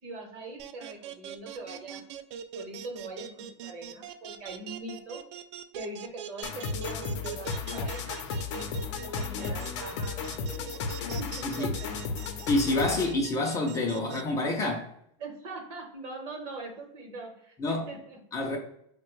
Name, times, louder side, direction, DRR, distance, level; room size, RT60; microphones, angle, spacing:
voice 1, 0.0-2.0 2.5-5.2 5.7-8.2 9.0-12.0 15.2-18.2, right 2 dB, 40° right, 1.0 m, -42 dB
sound 1, 0.6-14.2, right 9 dB, 70° right, 0.4 m, -42 dB
sound 2, 6.4-13.2, left 4 dB, 75° left, 0.6 m, -34 dB
voice 2, 11.4-11.7 12.5-14.9 17.6-17.8 18.3-18.6, left 2 dB, 20° left, 0.4 m, -27 dB
4.9 x 2.2 x 3.0 m
supercardioid pair, 160°, 15 cm